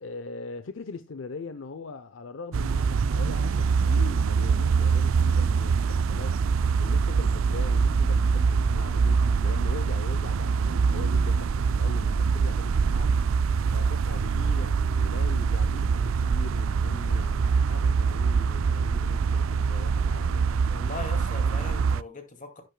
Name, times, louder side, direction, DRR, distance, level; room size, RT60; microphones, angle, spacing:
voice 1, 0.0-6.4 6.8-13.4 13.7-20.5, left 4 dB, 70° left, 0.6 m, -41 dB
sound 1, 2.5-22.0, right 5 dB, 85° right, 0.4 m, -24 dB
voice 2, 20.7-22.6, left 3 dB, 40° left, 2.3 m, -40 dB
10.5 x 10.0 x 2.2 m
head